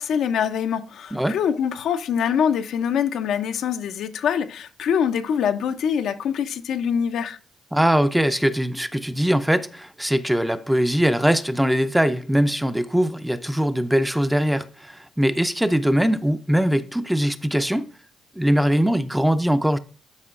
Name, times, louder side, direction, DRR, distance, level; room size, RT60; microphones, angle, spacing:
voice 1, 0.0-7.4, left 7 dB, 75° left, 0.6 m, -24 dB
voice 2, 7.7-17.9 18.4-19.8, equal, 5° right, 0.5 m, -21 dB
12.5 x 5.0 x 2.5 m
cardioid pair, 95°, 0 cm